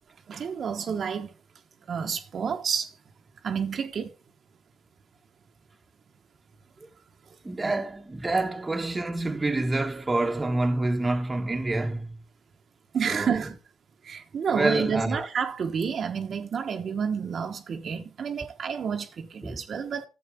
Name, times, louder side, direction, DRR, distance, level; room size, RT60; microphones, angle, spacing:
voice 1, 0.3-1.3 1.9-2.9 3.4-4.1 7.6-7.7 12.9-13.6 14.0-20.1, right 7 dB, 55° right, 1.2 m, -30 dB
voice 2, 7.4-12.2 13.1-13.4 14.5-15.3 19.4-19.6, right 2 dB, 20° right, 1.4 m, -27 dB
11.0 x 7.9 x 3.7 m
cardioid pair, 90°, 0 cm